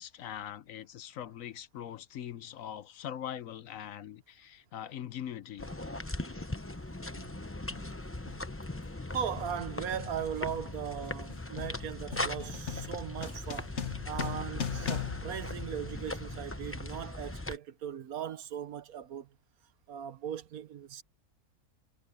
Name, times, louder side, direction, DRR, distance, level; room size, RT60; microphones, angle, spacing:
voice 1, 0.0-5.7, left 10 dB, 70° left, 1.1 m, -42 dB
sound 1, 5.6-17.6, left 2 dB, 10° left, 0.7 m, -39 dB
sound 2, 6.1-6.3 7.2-7.4 7.7-16.3, left 7 dB, 55° left, 1.4 m, -41 dB
voice 2, 9.1-13.7 14.0-19.3 19.9-21.0, right 9 dB, 80° right, 1.4 m, -38 dB
omnidirectional pair, 1.5 m